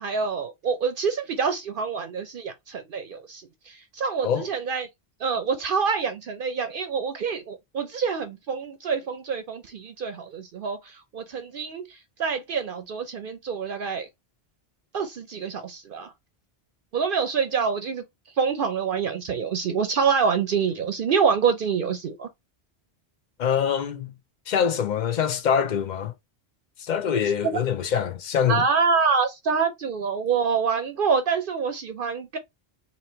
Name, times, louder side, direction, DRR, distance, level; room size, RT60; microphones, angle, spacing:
voice 1, 0.0-4.9 5.2-14.1 14.9-16.1 16.9-18.0 18.4-22.3 27.4-27.6 28.5-32.4, right 6 dB, 60° right, 0.7 m, -26 dB
voice 2, 23.4-24.1 24.5-26.1 26.8-28.6, left 8 dB, 50° left, 0.7 m, -24 dB
2.9 x 2.9 x 4.3 m
omnidirectional pair, 1.1 m